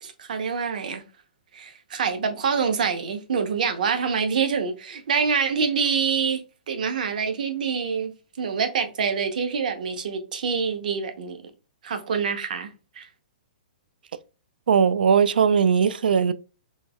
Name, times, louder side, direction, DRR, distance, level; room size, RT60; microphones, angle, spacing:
voice 1, 0.0-1.0 1.5-6.4 6.7-11.4 11.8-12.7 13.0-13.1, right 6 dB, 60° right, 0.8 m, -26 dB
voice 2, 14.7-16.3, right 6 dB, 90° right, 0.4 m, -19 dB
4.5 x 3.1 x 2.2 m
hypercardioid pair, 170°, 5 cm